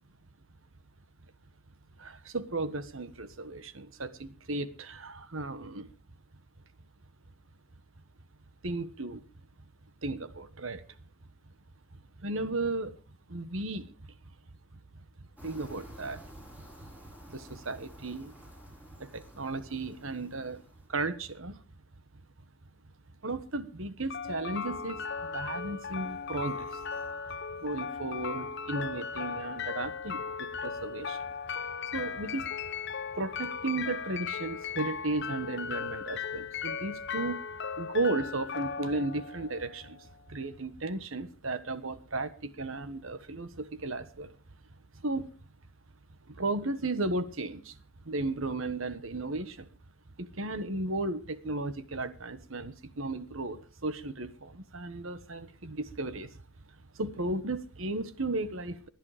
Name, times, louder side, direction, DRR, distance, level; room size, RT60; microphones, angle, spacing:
voice 1, 2.0-5.9 8.6-9.2 10.0-10.8 12.2-12.9 13.3-13.9 15.4-16.2 16.6-16.7 17.3-18.3 19.0-20.6 20.9-21.6 23.2-26.8 27.3-31.2 31.9-32.5 33.1-37.4 37.8-44.3 45.0-45.3 46.3-47.8 48.0-49.7 50.2-56.3 56.9-58.9, right 2 dB, 70° right, 1.4 m, -35 dB
sound 1, 15.4-20.9, equal, 10° right, 7.2 m, -51 dB
sound 2, 24.1-40.1, left 6 dB, 55° left, 0.8 m, -37 dB
18.5 x 11.0 x 5.0 m
head